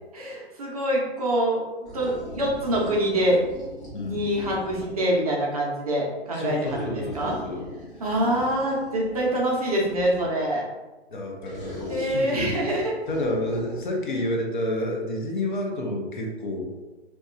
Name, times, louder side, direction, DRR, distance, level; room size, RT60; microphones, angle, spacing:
voice 1, 0.1-1.6 1.9-3.4 4.0-7.4 8.0-10.6 11.9-12.9, right 1 dB, 35° right, -3 dB, 0.5 m, -25 dB
sound 1, 1.8-5.2 6.6-10.5 11.4-14.3, equal, 15° left, 0.9 m, -40 dB
voice 2, 3.9-4.3 6.4-7.7 8.4-8.5 11.1-16.7, left 1 dB, 45° left, 1 dB, 0.6 m, -30 dB
2.8 x 2.2 x 2.3 m, 1.2 s
figure-of-eight pair, 125°, 33 cm